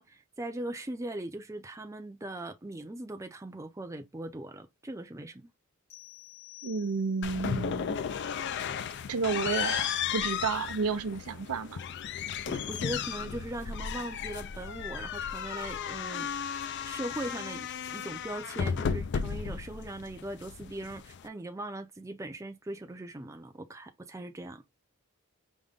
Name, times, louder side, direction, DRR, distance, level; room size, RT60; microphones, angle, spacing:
voice 1, 0.0-5.5 12.5-16.3 16.8-24.6, right 1 dB, 15° right, 0.5 m, -40 dB
sound 1, 5.9-7.4, left 19 dB, 75° left, 2.1 m, -51 dB
voice 2, 6.6-8.0 9.1-11.8, right 4 dB, 85° right, 0.6 m, -31 dB
sound 2, 7.2-21.3, left 7 dB, 55° left, 0.4 m, -34 dB
5.2 x 2.2 x 3.5 m
head